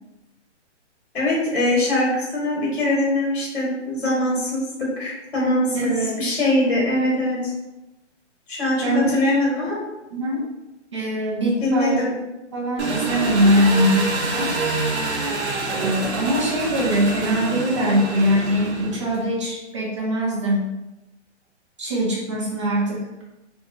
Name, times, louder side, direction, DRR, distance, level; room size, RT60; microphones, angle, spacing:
voice 1, 1.1-7.5 8.5-9.8 11.6-12.1, left 1 dB, 55° left, -4 dB, 1.5 m, -22 dB
voice 2, 5.7-6.3 8.8-9.1 10.1-10.4 10.9-12.0 12.5-14.5 15.7-20.6 21.8-23.1, equal, 25° right, -4 dB, 0.5 m, -22 dB
Engine, 12.8-19.3, right 3 dB, 65° right, 0.9 m, -27 dB
2.9 x 2.2 x 2.6 m, 0.98 s
hypercardioid pair, 160°, 36 cm